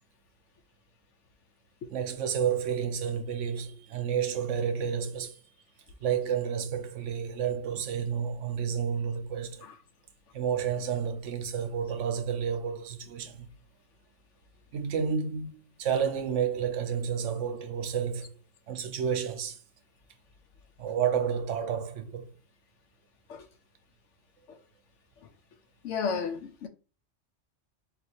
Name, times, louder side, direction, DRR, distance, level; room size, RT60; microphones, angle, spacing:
voice 1, 1.9-5.4 6.0-9.6 10.3-13.5 14.7-18.4 18.7-19.6 20.8-22.3, right 7 dB, 85° right, 1.0 m, -30 dB
voice 2, 25.8-26.7, left 5 dB, 80° left, 0.9 m, -31 dB
4.2 x 2.4 x 4.2 m
omnidirectional pair, 1.2 m